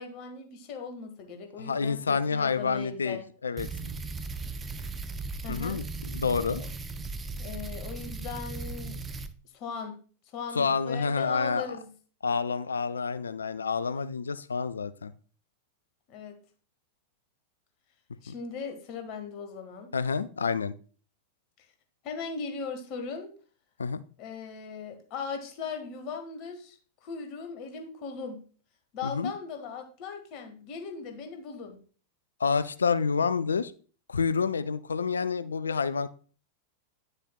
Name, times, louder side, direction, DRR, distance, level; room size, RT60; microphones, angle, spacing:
voice 1, 0.0-3.3 5.4-5.8 6.6-6.7 7.4-9.0 9.5-10.0 10.3-11.9 16.1-16.4 18.2-19.9 22.0-23.3 24.2-28.4 28.9-31.8, left 5 dB, 40° left, 5 dB, 1.4 m, -38 dB
voice 2, 1.6-3.7 5.5-6.6 10.5-11.8 12.2-15.1 18.3-18.4 19.9-20.7 23.8-24.0 29.0-29.3 32.4-33.7 34.1-36.1, left 5 dB, 75° left, 15 dB, 0.4 m, -28 dB
sound 1, 3.6-9.3, right 3 dB, 15° right, 0.6 m, -37 dB
9.8 x 6.5 x 2.3 m, 0.39 s
figure-of-eight pair, 90°, 0 cm